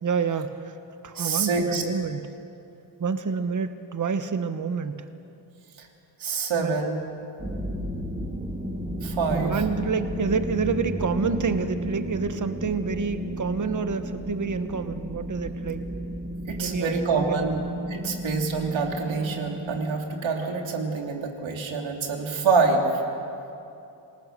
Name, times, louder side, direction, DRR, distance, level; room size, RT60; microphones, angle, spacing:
voice 1, 0.0-0.8 1.0-2.3 3.0-5.1 6.6-6.8 9.3-15.9 16.6-17.5, right 5 dB, 40° right, 9 dB, 1.3 m, -28 dB
voice 2, 1.1-1.8 6.2-7.1 9.0-9.5 16.5-17.6 17.9-22.9, right 4 dB, 75° right, 2 dB, 3.0 m, -26 dB
sound 1, 7.4-20.0, equal, 15° right, 2.4 m, -33 dB
28.0 x 20.0 x 6.8 m, 2.7 s
wide cardioid pair, 120°, 47 cm